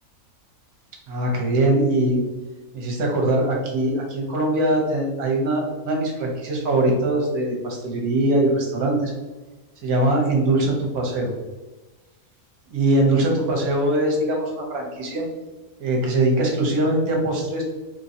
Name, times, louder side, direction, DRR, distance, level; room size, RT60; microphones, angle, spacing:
voice 1, 1.1-2.2 2.7-9.1 9.8-11.3 12.7-15.2 15.8-17.6, right 1 dB, 80° right, 0 dB, 1.5 m, -22 dB
4.5 x 3.2 x 2.7 m, 1.2 s
omnidirectional pair, 1.5 m